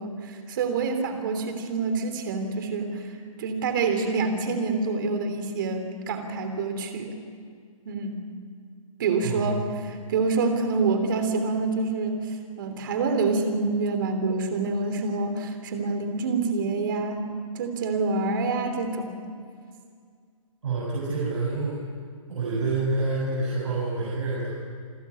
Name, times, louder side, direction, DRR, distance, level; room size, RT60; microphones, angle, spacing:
voice 1, 0.0-3.1 3.4-7.2 7.8-8.2 9.0-17.2 17.5-19.1, right 4 dB, 40° right, 6 dB, 3.3 m, -27 dB
voice 2, 20.6-21.8 22.3-24.5, right 3 dB, 55° right, -5 dB, 6.8 m, -27 dB
28.0 x 14.5 x 9.6 m, 2.1 s
hypercardioid pair, 165°, 18 cm